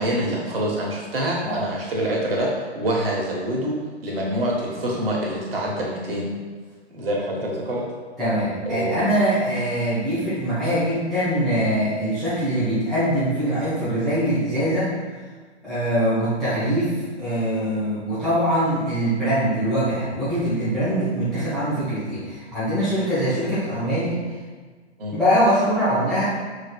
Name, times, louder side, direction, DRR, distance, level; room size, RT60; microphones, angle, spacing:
voice 1, 0.0-3.7 4.0-6.4 6.9-7.8 8.7-9.0 25.0-25.1, right 1 dB, 55° right, -2 dB, 1.2 m, -25 dB
voice 2, 8.2-14.9 15.6-24.2 25.1-26.2, equal, ahead, -15 dB, 0.4 m, -23 dB
5.8 x 3.3 x 2.3 m, 1.5 s
figure-of-eight pair, 120°, 34 cm